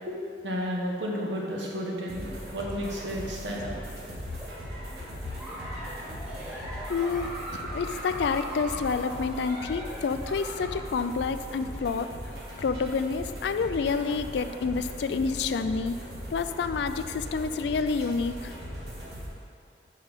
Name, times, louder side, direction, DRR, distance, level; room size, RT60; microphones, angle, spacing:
voice 1, 0.1-3.8, equal, 80° right, -2 dB, 1.2 m, -32 dB
sound 1, 2.1-19.3, equal, 60° right, 1.4 m, -39 dB
Giggle, 4.2-10.9, equal, 5° right, 1.3 m, -40 dB
voice 2, 6.9-12.1 12.6-16.0 16.3-18.5, left 5 dB, 70° left, 10 dB, 0.3 m, -28 dB
5.6 x 5.5 x 5.2 m, 2.4 s
head